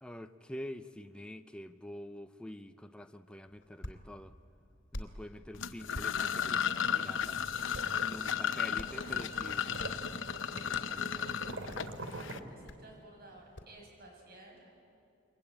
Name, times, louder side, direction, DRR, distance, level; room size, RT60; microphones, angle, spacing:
voice 1, 0.0-4.3 4.9-7.4 8.0-9.8 10.5-11.8, left 1 dB, 5° left, 7 dB, 0.7 m, -47 dB
Hands, 3.4-13.8, left 1 dB, 70° left, 2.6 m, -50 dB
sound 1, 5.5-12.4, left 8 dB, 90° left, 0.9 m, -34 dB
sound 2, 6.9-12.4, right 2 dB, 85° right, 2.8 m, -46 dB
voice 2, 12.1-14.7, right 2 dB, 55° right, 0 dB, 7.8 m, -55 dB
28.5 x 23.5 x 8.9 m, 2.6 s
head